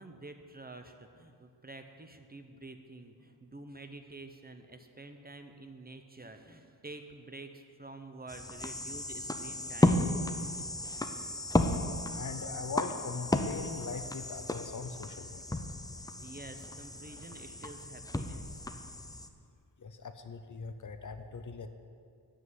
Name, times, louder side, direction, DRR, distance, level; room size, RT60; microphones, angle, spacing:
voice 1, 0.0-10.1 16.2-18.7, right 2 dB, 20° right, 6 dB, 0.7 m, -49 dB
sound 1, 8.3-19.3, left 1 dB, 10° left, 0.5 m, -33 dB
voice 2, 12.1-15.6 19.8-21.7, left 4 dB, 45° left, 9 dB, 0.7 m, -41 dB
14.5 x 5.4 x 9.6 m, 2.3 s
wide cardioid pair, 150°, 42 cm